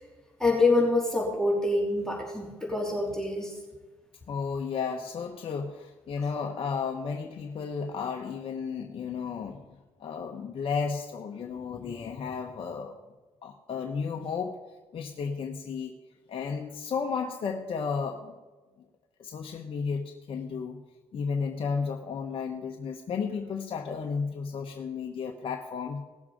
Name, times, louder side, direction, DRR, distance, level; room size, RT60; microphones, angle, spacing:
voice 1, 0.4-3.5, left 2 dB, 5° left, -2 dB, 3.4 m, -26 dB
voice 2, 4.3-9.6 10.0-13.0 13.4-14.6 14.9-15.9 16.3-18.3 19.2-20.8 21.1-26.0, left 5 dB, 50° left, 3 dB, 1.0 m, -33 dB
18.0 x 7.3 x 5.0 m, 1.2 s
hypercardioid pair, 55°, 12 cm